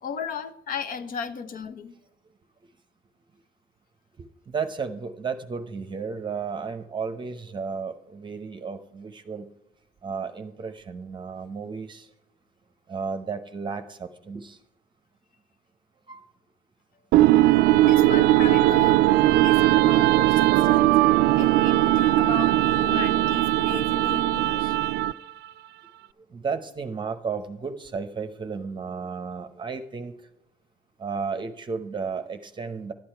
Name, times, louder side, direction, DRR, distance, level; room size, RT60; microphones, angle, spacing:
voice 1, 0.0-2.0 17.8-19.0 19.4-20.9 21.4-24.7, left 6 dB, 55° left, 1.0 m, -35 dB
voice 2, 4.5-9.5 10.0-12.1 12.9-14.6 16.1-16.2 26.3-30.1 31.0-32.9, right 5 dB, 25° right, 0.8 m, -33 dB
sound 1, 17.1-25.3, right 15 dB, 75° right, 0.4 m, -19 dB
12.0 x 8.7 x 4.5 m
cardioid pair, 110°, 17 cm